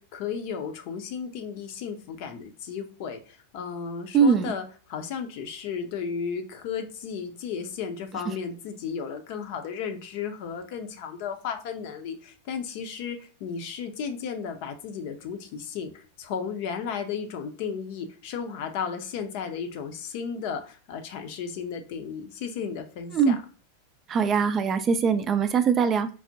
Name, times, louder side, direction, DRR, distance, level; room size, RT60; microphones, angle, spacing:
voice 1, 0.0-23.4, left 6 dB, 55° left, 6 dB, 0.6 m, -34 dB
voice 2, 4.1-4.5 23.1-23.4 24.1-26.1, right 6 dB, 30° right, 10 dB, 0.4 m, -22 dB
4.6 x 2.1 x 2.7 m, 0.38 s
figure-of-eight pair, 95°, 0 cm